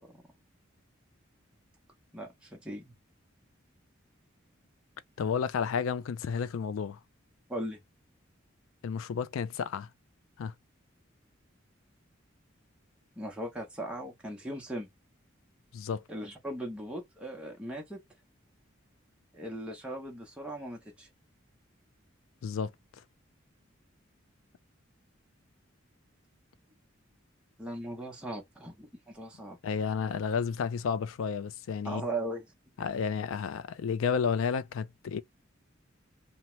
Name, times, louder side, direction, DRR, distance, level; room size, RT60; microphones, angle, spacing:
voice 1, 2.1-2.9 7.5-7.8 13.2-14.9 16.1-18.0 19.3-21.1 27.6-29.6 31.8-32.4, right 1 dB, 5° right, 0.6 m, -38 dB
voice 2, 5.2-7.0 8.8-9.9 10.4-10.5 15.7-16.0 22.4-22.7 29.6-32.1 32.8-35.2, left 6 dB, 85° left, 0.3 m, -31 dB
2.8 x 2.1 x 3.0 m
head